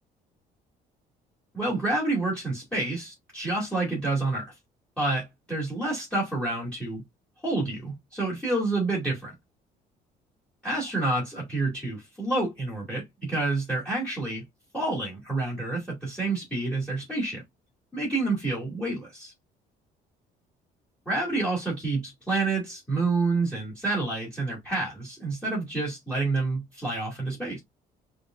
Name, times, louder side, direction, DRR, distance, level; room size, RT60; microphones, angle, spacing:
voice 1, 1.5-4.5 5.0-7.0 7.4-9.3 10.6-14.4 14.7-17.4 17.9-19.3 21.1-27.6, right 2 dB, 5° left, 2.5 m, -28 dB
5.2 x 3.4 x 2.4 m
cardioid pair, 110°, 17 cm